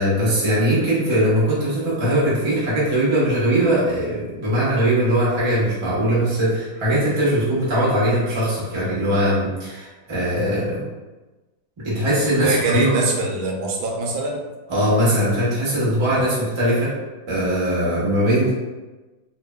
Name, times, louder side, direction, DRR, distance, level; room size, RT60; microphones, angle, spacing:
voice 1, 0.0-10.8 11.8-13.0 14.7-16.9 17.3-18.5, right 1 dB, 35° right, -9 dB, 0.4 m, -20 dB
voice 2, 12.4-14.4 16.2-16.4, right 3 dB, 90° right, 0 dB, 1.4 m, -23 dB
3.3 x 2.1 x 2.2 m, 1.2 s
omnidirectional pair, 2.2 m